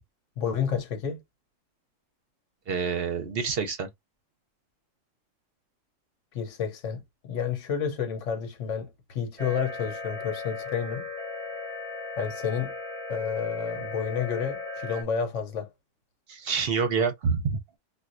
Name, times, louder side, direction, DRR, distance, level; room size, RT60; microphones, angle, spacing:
voice 1, 0.4-1.2 6.3-11.1 12.2-12.7 13.1-15.7, left 7 dB, 70° left, 1.1 m, -30 dB
voice 2, 2.7-3.9 16.3-17.6, right 5 dB, 60° right, 0.8 m, -27 dB
sound 1, 9.4-15.0, left 3 dB, 5° left, 0.6 m, -37 dB
4.3 x 2.3 x 2.5 m
omnidirectional pair, 1.3 m